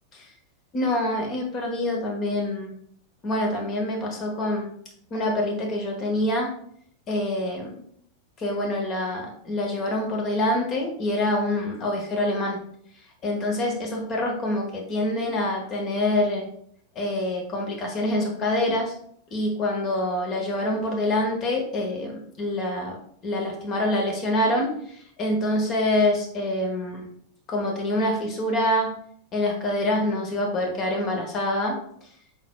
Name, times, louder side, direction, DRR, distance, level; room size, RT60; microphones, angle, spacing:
voice 1, 0.7-2.7 3.2-4.7 5.1-6.5 7.1-7.8 8.4-12.6 13.2-16.5 16.9-18.9 19.3-23.0 23.2-27.0 27.5-28.9 29.3-31.8, left 1 dB, 30° left, 1 dB, 1.2 m, -26 dB
4.7 x 3.9 x 2.3 m, 0.64 s
figure-of-eight pair, 90°, 0 cm